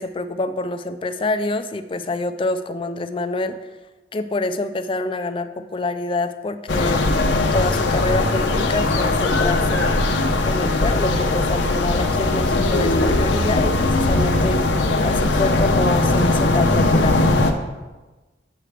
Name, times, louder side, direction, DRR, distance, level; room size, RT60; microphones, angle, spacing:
voice 1, 0.0-3.6 4.1-7.1 7.5-10.0 10.4-14.6 15.0-17.3, left 2 dB, 30° left, 9 dB, 0.4 m, -26 dB
sound 1, 6.7-17.5, left 2 dB, 85° left, 0.7 m, -19 dB
7.5 x 7.4 x 3.4 m, 1.2 s
head